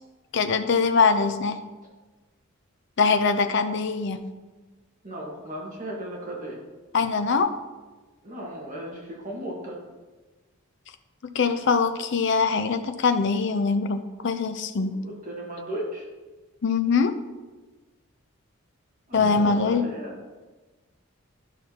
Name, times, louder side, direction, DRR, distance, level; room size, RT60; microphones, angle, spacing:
voice 1, 0.3-1.6 3.0-4.2 6.9-7.6 11.3-14.9 16.6-17.1 19.1-19.9, left 5 dB, 55° left, 8 dB, 0.5 m, -23 dB
voice 2, 5.0-6.6 8.2-9.8 15.0-16.0 19.1-20.1, right 1 dB, 35° right, -3 dB, 1.4 m, -36 dB
12.5 x 5.7 x 2.9 m, 1.3 s
head